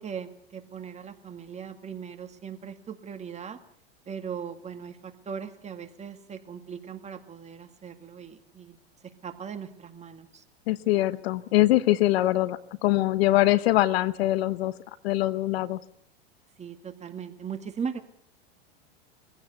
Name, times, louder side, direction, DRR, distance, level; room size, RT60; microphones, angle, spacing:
voice 1, 0.0-3.6 4.1-8.8 9.0-10.4 16.6-18.0, right 7 dB, 20° right, 8 dB, 2.1 m, -39 dB
voice 2, 10.7-14.7 15.0-15.8, left 16 dB, 70° left, 16 dB, 1.2 m, -23 dB
22.0 x 16.0 x 8.2 m, 0.65 s
hypercardioid pair, 115°, 32 cm